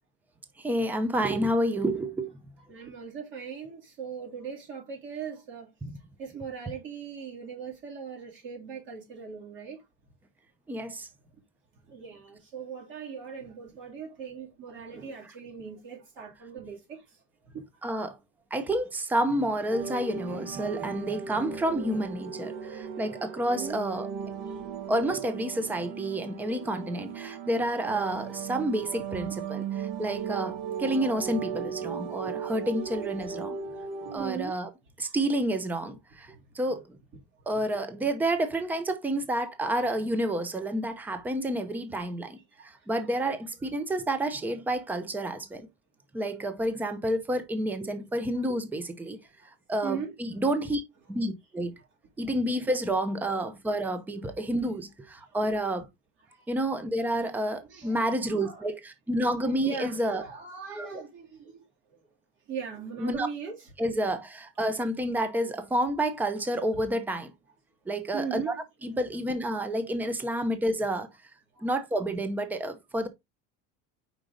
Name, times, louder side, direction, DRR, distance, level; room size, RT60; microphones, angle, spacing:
voice 1, 0.6-2.3 5.8-5.9 10.7-11.1 17.8-18.2 18.5-24.1 24.9-33.6 34.1-34.7 35.0-36.8 37.5-42.4 42.6-45.7 46.1-49.2 49.7-50.8 51.1-51.7 52.2-55.9 56.5-60.2 60.8-61.0 63.0-63.3 63.8-67.3 67.9-68.5 68.8-71.1 71.6-73.1, right 1 dB, 5° right, 0.6 m, -29 dB
voice 2, 2.7-5.7 6.2-9.8 11.9-17.0 17.5-17.6 23.5-23.8 29.3-29.4 34.1-34.6 35.0-35.1 37.5-37.6 42.6-42.7 49.8-50.1 56.3-56.4 57.7-58.0 58.3-58.6 59.5-61.6 62.5-63.7 68.1-68.6 71.5-71.7, right 6 dB, 35° right, 3.0 m, -39 dB
sound 1, 19.7-34.2, right 7 dB, 70° right, 1.3 m, -37 dB
5.1 x 4.8 x 3.8 m
cardioid pair, 160°, 32 cm